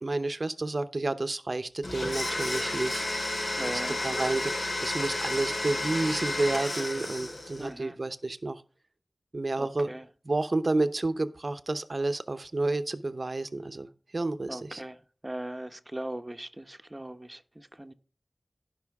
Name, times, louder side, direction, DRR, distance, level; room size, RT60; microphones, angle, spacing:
voice 1, 0.0-3.1 3.7-8.6 9.3-9.9 10.2-14.8, right 2 dB, 60° right, 0.8 m, -30 dB
Domestic sounds home sounds, 1.8-7.7, left 1 dB, 85° left, 3.6 m, -32 dB
voice 2, 3.6-4.2 7.6-7.9 9.6-10.1 14.5-15.0 15.2-17.9, right 1 dB, 25° right, 1.0 m, -39 dB
16.5 x 5.6 x 3.6 m
wide cardioid pair, 45°, 0 cm